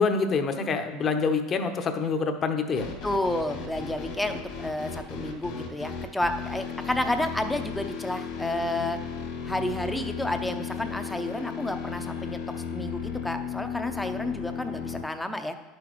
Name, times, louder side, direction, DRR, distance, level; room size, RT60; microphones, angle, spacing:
voice 1, 0.0-2.9, left 4 dB, 35° left, 7 dB, 0.9 m, -26 dB
sound 1, 2.8-15.0, left 6 dB, 70° left, 2.1 m, -35 dB
voice 2, 3.0-9.0 9.4-15.6, left 1 dB, 5° left, 7 dB, 0.7 m, -31 dB
10.5 x 6.2 x 3.1 m, 1.3 s
hypercardioid pair, 90°, 0 cm